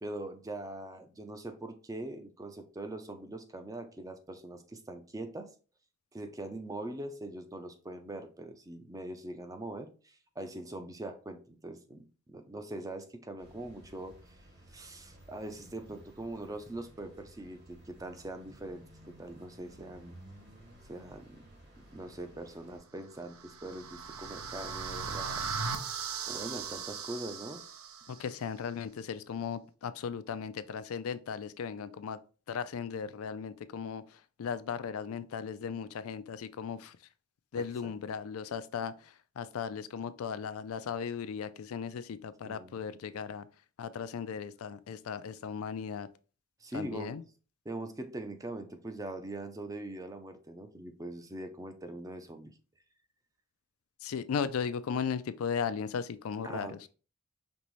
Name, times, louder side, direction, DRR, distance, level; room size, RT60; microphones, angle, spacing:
voice 1, 0.0-5.5 6.1-14.4 14.7-20.1 20.9-21.4 21.8-25.5 26.2-27.6 37.6-37.9 42.4-42.8 46.6-47.2 47.6-52.5 56.4-56.9, right 2 dB, 15° right, 0.5 m, -42 dB
sound 1, 13.4-22.8, right 1 dB, 50° right, 1.9 m, -56 dB
sound 2, 23.1-28.2, right 5 dB, 80° right, 0.6 m, -38 dB
voice 2, 28.1-32.2 32.5-34.0 34.4-37.0 37.5-38.9 39.4-43.4 43.8-46.1 46.7-47.2 54.0-56.7, left 6 dB, 80° left, 0.4 m, -36 dB
5.3 x 3.0 x 3.1 m
head